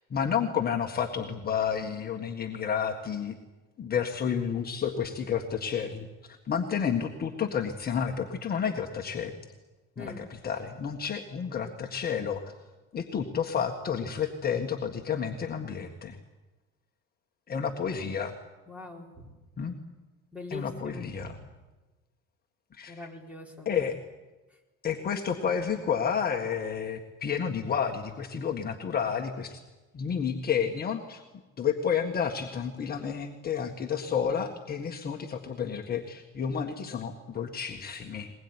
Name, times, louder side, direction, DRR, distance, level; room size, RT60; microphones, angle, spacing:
voice 1, 0.1-3.4 3.8-9.3 10.0-12.5 12.9-16.2 17.5-18.3 19.6-19.8 20.5-21.4 22.7-23.1 23.7-24.0 24.8-29.6 29.9-31.2 31.6-38.3, left 7 dB, 30° left, 2 dB, 1.7 m, -30 dB
voice 2, 10.0-10.3 18.7-19.3 20.3-21.4 22.9-23.7, left 2 dB, 5° right, 1 dB, 4.4 m, -42 dB
21.5 x 21.0 x 9.8 m, 1.2 s
cardioid pair, 135°, 30 cm